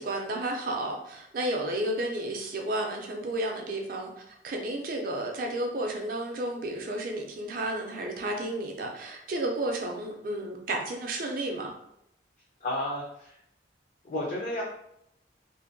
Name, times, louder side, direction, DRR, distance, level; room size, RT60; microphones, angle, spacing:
voice 1, 0.0-11.7, right 1 dB, 50° right, 2 dB, 0.4 m, -32 dB
voice 2, 12.6-13.4 14.0-14.6, left 1 dB, 45° left, -3 dB, 0.4 m, -32 dB
2.6 x 2.1 x 2.5 m, 0.77 s
head